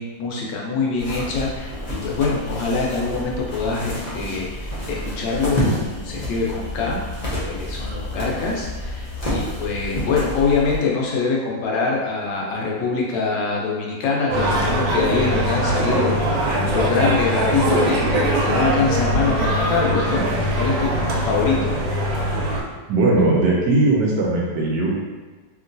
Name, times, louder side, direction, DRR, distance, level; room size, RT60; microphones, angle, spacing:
voice 1, 0.0-7.0 7.4-20.3 20.6-21.7, left 4 dB, 75° left, -3 dB, 1.2 m, -24 dB
sound 1, 1.0-10.8, equal, 60° left, 0.4 m, -29 dB
sound 2, 14.3-22.6, right 1 dB, 90° right, 1.3 m, -21 dB
voice 2, 22.9-24.9, right 2 dB, 70° right, -3 dB, 1.0 m, -18 dB
2.9 x 2.8 x 2.6 m, 1.3 s
omnidirectional pair, 2.0 m